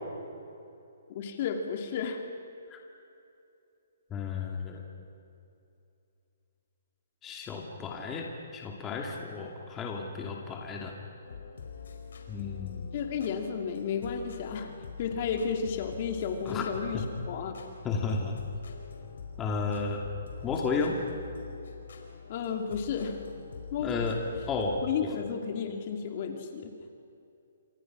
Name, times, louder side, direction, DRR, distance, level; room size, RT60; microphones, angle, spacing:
voice 1, 1.1-2.2 12.9-14.7 15.0-17.5 22.3-23.2 23.7-23.9 24.8-26.7, left 6 dB, 40° left, 4 dB, 2.7 m, -32 dB
voice 2, 4.1-4.8 7.2-8.3 8.5-10.9 12.3-12.9 16.5-16.7 16.9-17.0 17.8-18.4 19.4-20.0 20.4-21.0 23.8-24.2 24.5-25.1, left 4 dB, 15° left, 0 dB, 2.5 m, -33 dB
sound 1, 11.2-24.8, left 6 dB, 70° left, 4.6 m, -44 dB
28.5 x 26.5 x 6.3 m, 2.7 s
hypercardioid pair, 160°, 0 cm